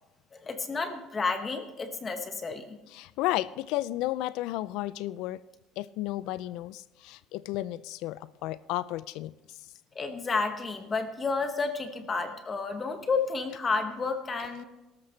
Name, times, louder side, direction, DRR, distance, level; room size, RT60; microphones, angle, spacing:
voice 1, 0.3-2.8 9.9-14.6, left 4 dB, 20° left, 7 dB, 1.0 m, -31 dB
voice 2, 2.9-5.4 5.8-9.3, left 16 dB, 70° left, 18 dB, 0.4 m, -33 dB
18.0 x 13.5 x 3.2 m, 1.0 s
cardioid pair, 160°, 0 cm